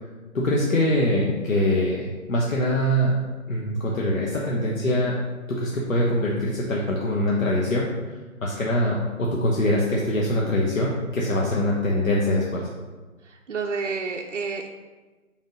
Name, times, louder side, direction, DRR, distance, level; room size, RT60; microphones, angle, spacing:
voice 1, 0.3-3.1 3.5-5.2 5.5-7.9 8.4-12.7, left 1 dB, 70° left, -3 dB, 1.1 m, -23 dB
voice 2, 13.3-14.7, right 4 dB, 60° right, 1 dB, 0.5 m, -30 dB
5.2 x 3.6 x 5.0 m, 1.3 s
hypercardioid pair, 175°, 42 cm